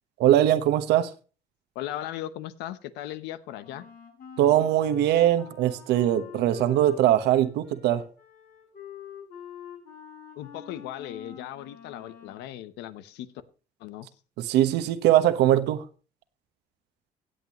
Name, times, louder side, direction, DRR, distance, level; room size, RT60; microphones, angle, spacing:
voice 1, 0.2-1.1 4.4-8.0 14.4-15.8, right 12 dB, 85° right, 1.1 m, -21 dB
voice 2, 1.7-3.9 10.4-13.3 13.8-14.1, left 13 dB, 90° left, 0.9 m, -37 dB
Wind instrument woodwind instrument, 3.6-12.5, left 8 dB, 60° left, 5.9 m, -45 dB
17.0 x 8.2 x 3.0 m
cardioid pair, 110°, 17 cm